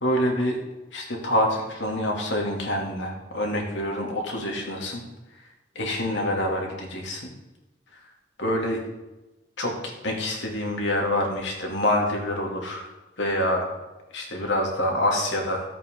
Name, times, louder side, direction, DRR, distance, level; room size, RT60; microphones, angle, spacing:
voice 1, 0.0-0.6 0.9-5.0 5.7-7.3 8.4-8.8 9.6-9.7 10.0-12.9 13.2-13.7 14.1-15.7, left 1 dB, 75° left, 0 dB, 2.8 m, -26 dB
14.5 x 8.4 x 3.8 m, 1.0 s
head